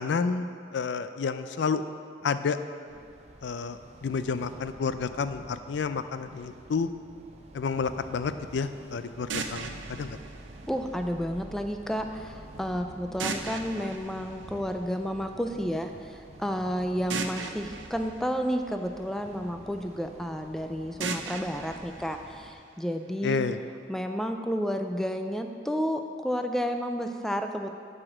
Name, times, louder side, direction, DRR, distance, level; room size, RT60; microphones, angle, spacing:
voice 1, 0.0-1.8 2.2-2.6 3.4-6.9 7.5-10.2 23.2-23.6, left 5 dB, 70° left, 11 dB, 0.4 m, -30 dB
sound 1, 2.9-22.5, right 1 dB, 35° right, 0.7 m, -48 dB
sound 2, 9.3-11.3 13.2-15.2 17.1-19.3 21.0-23.0, right 4 dB, 85° right, 0.6 m, -38 dB
voice 2, 10.7-23.4 23.9-27.8, equal, ahead, 5 dB, 0.3 m, -31 dB
9.7 x 4.9 x 6.2 m, 2.3 s
head